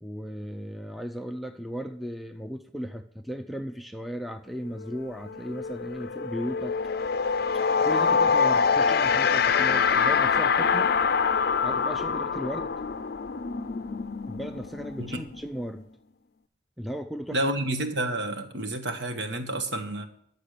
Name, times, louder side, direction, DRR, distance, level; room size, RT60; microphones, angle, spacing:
voice 1, 0.0-6.7 7.8-11.0 11.6-12.7 14.3-15.8 16.8-17.4, equal, ahead, 6 dB, 0.5 m, -36 dB
sound 1, 4.8-5.0 5.3-15.8, left 5 dB, 55° left, 0.5 m, -25 dB
voice 2, 17.3-20.1, right 1 dB, 60° right, 7 dB, 1.2 m, -29 dB
10.5 x 6.8 x 6.6 m, 0.70 s
head